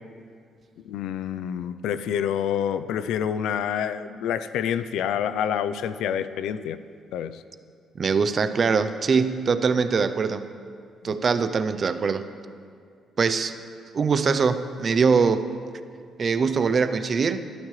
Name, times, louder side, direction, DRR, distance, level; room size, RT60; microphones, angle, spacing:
voice 1, 0.8-6.8 7.1-7.4 11.0-11.1, left 9 dB, 85° left, 13 dB, 0.5 m, -27 dB
voice 2, 7.9-10.5 11.0-12.3 13.2-13.6 13.9-15.5 16.2-17.4, right 5 dB, 30° right, 11 dB, 0.5 m, -22 dB
22.5 x 12.5 x 3.2 m, 2.2 s
cardioid pair, 170°, 0 cm